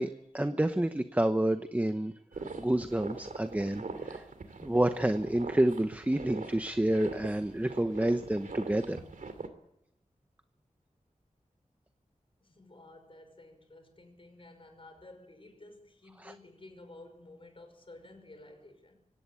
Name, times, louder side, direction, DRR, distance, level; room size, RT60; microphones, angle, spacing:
voice 1, 0.0-2.1 2.6-4.2 4.6-9.0 16.2-16.3, right 1 dB, 10° right, 9 dB, 0.9 m, -29 dB
sound 1, 2.3-9.5, right 4 dB, 75° right, 2.5 m, -42 dB
voice 2, 12.4-19.0, left 2 dB, 40° left, 6 dB, 5.8 m, -53 dB
24.5 x 18.5 x 8.6 m, 0.81 s
wide cardioid pair, 95°, 14 cm